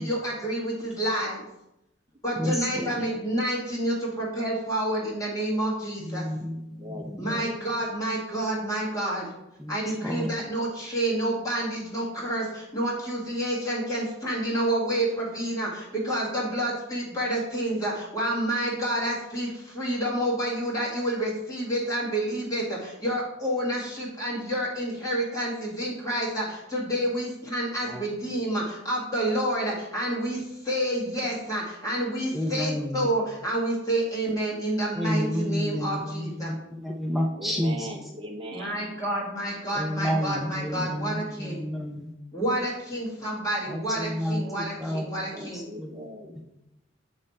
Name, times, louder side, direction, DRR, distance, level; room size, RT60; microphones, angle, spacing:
voice 1, 0.0-1.5 2.2-6.3 7.2-9.3 9.7-36.5 38.5-41.6 42.3-45.7, right 1 dB, 20° left, -5 dB, 1.8 m, -29 dB
voice 2, 2.4-3.1 6.0-7.4 9.6-10.3 27.9-28.1 32.3-33.1 34.9-37.9 39.7-42.1 43.7-46.0 46.4-46.5, equal, ahead, 0 dB, 0.4 m, -30 dB
voice 3, 6.8-7.6 37.4-38.8 45.3-46.4, equal, 25° right, 1 dB, 0.8 m, -40 dB
7.9 x 3.2 x 4.2 m, 0.86 s
head